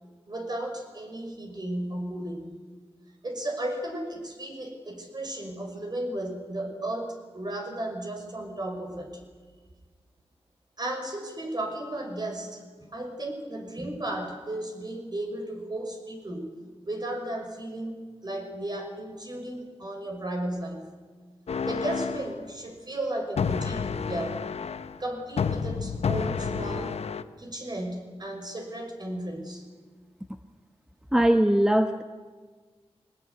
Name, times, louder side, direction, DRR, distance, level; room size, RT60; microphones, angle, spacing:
voice 1, 0.3-2.5 3.2-9.2 10.8-16.5 16.8-20.8 21.6-24.4 25.0-27.0 27.4-29.6, right 1 dB, 40° right, 3 dB, 6.0 m, -34 dB
sound 1, 21.5-22.3 23.4-25.0 25.4-27.2, left 6 dB, 80° left, 0.9 m, -30 dB
voice 2, 31.1-32.0, right 1 dB, 5° right, 7 dB, 1.2 m, -20 dB
23.0 x 19.5 x 9.9 m, 1.5 s
cardioid pair, 60°, 11 cm